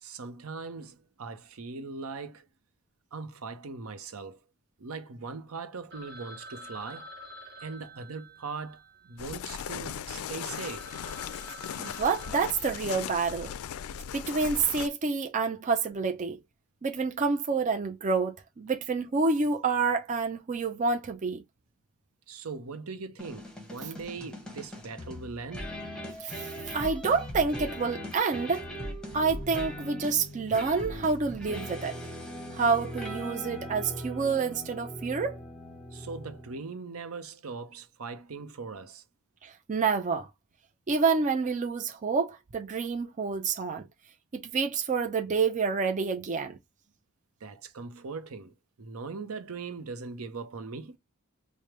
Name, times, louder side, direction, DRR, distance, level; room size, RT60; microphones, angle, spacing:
voice 1, 0.0-2.5 3.1-4.4 4.8-7.1 7.6-10.9 22.3-25.7 35.9-39.0 47.4-51.0, right 4 dB, 75° right, 0.7 m, -40 dB
Telephone, 5.9-9.7 10.2-10.3 10.5-13.3, equal, 55° right, 1.0 m, -48 dB
sound 1, 9.2-14.9, left 8 dB, 75° left, 0.3 m, -38 dB
voice 2, 11.8-13.5 14.1-16.4 16.8-21.4 26.2-28.6 29.1-32.0 32.5-35.4 39.4-40.3 40.9-43.9 44.3-46.6, right 4 dB, 35° right, 0.5 m, -28 dB
sound 2, 23.2-36.7, equal, 5° left, 1.2 m, -40 dB
4.9 x 2.1 x 3.0 m
head